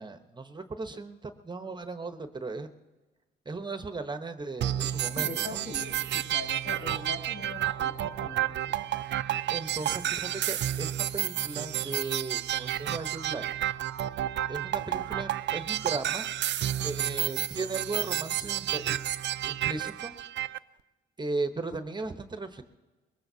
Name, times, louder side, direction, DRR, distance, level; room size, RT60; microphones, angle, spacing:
voice 1, 0.0-2.7 3.4-5.6 9.5-13.5 14.5-16.3 16.8-19.0 19.5-20.1 21.2-22.6, right 3 dB, 20° right, 8 dB, 1.0 m, -36 dB
sound 1, 4.6-20.6, right 12 dB, 65° right, 0.5 m, -31 dB
voice 2, 5.0-8.7, left 3 dB, 80° left, -1 dB, 4.9 m, -41 dB
22.0 x 19.5 x 2.8 m, 1.2 s
cardioid pair, 90°, 20 cm